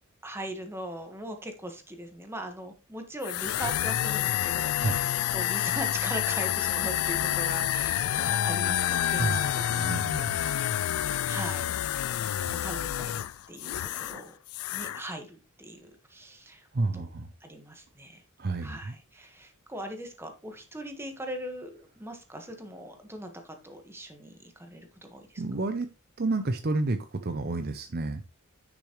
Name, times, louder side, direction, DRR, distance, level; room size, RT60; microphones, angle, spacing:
voice 1, 0.2-5.1 5.3-9.6 10.2-10.7 11.3-11.7 12.5-13.8 14.1-14.3 14.7-15.8 16.1-16.6 16.9-17.1 17.4-18.2 18.6-21.7 22.0-25.2, right 1 dB, 10° right, 5 dB, 1.4 m, -40 dB
sound 1, 3.2-14.2 14.5-15.0, left 12 dB, 70° left, 0.3 m, -28 dB
voice 2, 9.2-10.4 16.7-17.3 18.4-19.0 25.4-25.9 26.2-28.2, right 2 dB, 45° right, 9 dB, 0.6 m, -30 dB
10.0 x 6.2 x 3.1 m, 0.28 s
head